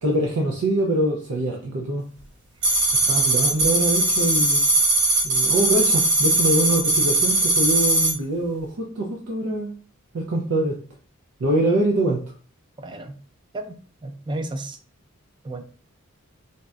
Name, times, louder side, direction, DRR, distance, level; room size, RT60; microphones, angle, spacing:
voice 1, 0.0-2.0 3.1-4.6 5.2-9.7 10.1-10.8 11.4-12.2, right 1 dB, 80° right, 0 dB, 0.5 m, -24 dB
sound 1, 2.6-8.1, right 2 dB, 55° right, 0.8 m, -20 dB
voice 2, 12.8-13.2 13.5-14.8 15.4-15.6, right 2 dB, 20° right, 8 dB, 0.3 m, -33 dB
4.0 x 2.2 x 2.4 m, 0.40 s
head